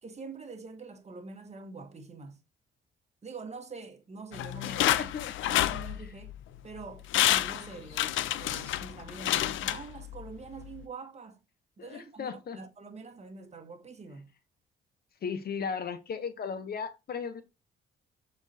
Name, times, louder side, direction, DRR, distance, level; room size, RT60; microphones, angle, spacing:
voice 1, 0.0-2.4 3.2-5.1 5.4-6.3 6.6-11.4 11.8-14.3, right 4 dB, 35° right, 1.7 m, -45 dB
sound 1, 4.3-6.4 6.8-6.9 7.1-10.3 10.6-10.7, left 13 dB, 80° left, 0.6 m, -29 dB
voice 2, 4.7-5.3 11.8-12.6 15.2-17.4, left 6 dB, 50° left, 1.1 m, -36 dB
7.2 x 4.5 x 4.2 m
cardioid pair, 90°, 20 cm